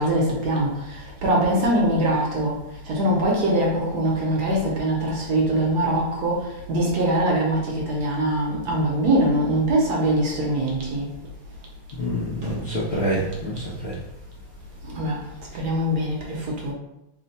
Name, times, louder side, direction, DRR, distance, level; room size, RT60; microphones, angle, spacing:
voice 1, 0.0-2.5 2.9-6.4 6.7-11.1 14.9-15.1 15.5-16.7, right 1 dB, 65° right, -3 dB, 1.2 m, -22 dB
voice 2, 12.0-13.9, equal, 85° left, -6 dB, 0.5 m, -26 dB
3.4 x 2.2 x 3.9 m, 0.89 s
omnidirectional pair, 2.0 m